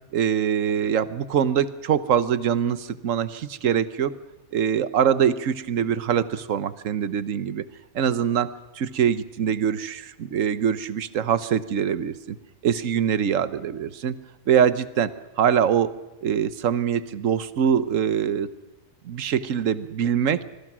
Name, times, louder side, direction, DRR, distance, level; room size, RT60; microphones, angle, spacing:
voice 1, 0.1-4.1 4.5-7.6 7.9-12.4 12.6-14.1 14.5-15.1 15.4-15.9 16.2-18.5 19.0-20.4, right 8 dB, 70° right, 14 dB, 1.4 m, -23 dB
26.0 x 21.5 x 6.2 m, 1.1 s
omnidirectional pair, 1.4 m